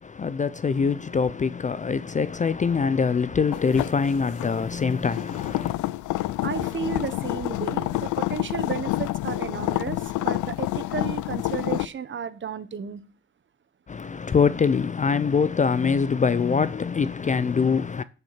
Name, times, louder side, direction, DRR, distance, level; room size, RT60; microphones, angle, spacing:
voice 1, 0.0-5.7 13.9-18.0, left 5 dB, 25° left, 0.4 m, -24 dB
sound 1, 3.5-11.9, left 17 dB, 80° left, 0.5 m, -28 dB
voice 2, 6.4-13.0, right 7 dB, 40° right, 1.0 m, -33 dB
7.2 x 6.3 x 7.4 m
cardioid pair, 90°, 30 cm